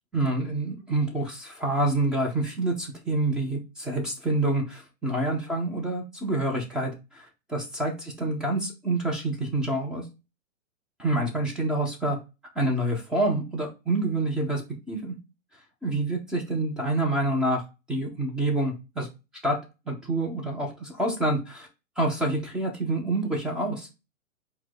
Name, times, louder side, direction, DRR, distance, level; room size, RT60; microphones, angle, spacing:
voice 1, 0.1-10.0 11.0-12.2 12.6-14.6 14.9-15.1 15.8-17.6 17.9-19.1 19.4-19.6 19.9-21.7 22.0-23.9, right 2 dB, ahead, -1 dB, 0.4 m, -27 dB
4.6 x 2.2 x 3.9 m, 0.27 s
hypercardioid pair, 135°, 40 cm